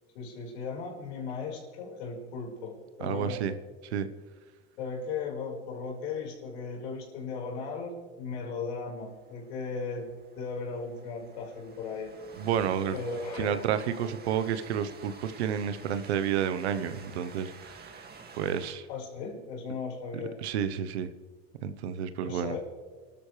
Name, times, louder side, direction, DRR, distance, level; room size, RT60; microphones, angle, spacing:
voice 1, 0.1-3.4 4.8-12.1 12.9-13.7 18.9-20.4 22.2-22.6, left 4 dB, 80° left, -2 dB, 4.8 m, -37 dB
voice 2, 3.0-3.5 3.9-4.1 12.4-13.0 13.4-18.0 18.4-18.9 20.4-21.1 21.6-22.6, right 8 dB, 85° right, 11 dB, 1.0 m, -30 dB
Train, 9.0-18.7, right 5 dB, 30° right, 2.2 m, -50 dB
29.0 x 12.5 x 3.3 m, 1.5 s
hypercardioid pair, 90°, 32 cm